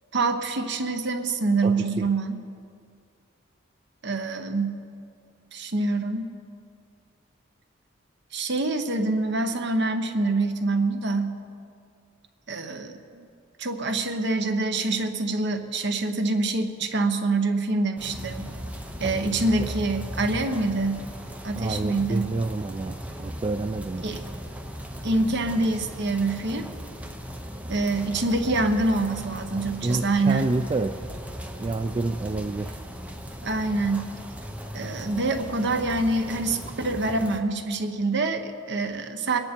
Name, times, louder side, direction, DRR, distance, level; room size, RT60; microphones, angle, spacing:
voice 1, 0.1-2.4 4.0-4.8 5.5-6.3 8.3-11.4 12.5-13.3 13.6-18.5 19.0-21.0 21.4-22.3 24.0-24.2 25.0-26.7 27.7-30.5 33.4-34.1 34.7-39.4, right 2 dB, 60° right, 6 dB, 1.0 m, -26 dB
voice 2, 1.6-2.1 19.0-19.2 19.6-19.7 21.6-24.2 29.8-31.1 31.6-32.8, right 2 dB, 25° right, 7 dB, 0.3 m, -29 dB
sound 1, 18.0-37.4, equal, 5° right, 0.8 m, -37 dB
22.0 x 9.8 x 4.5 m, 2.4 s
head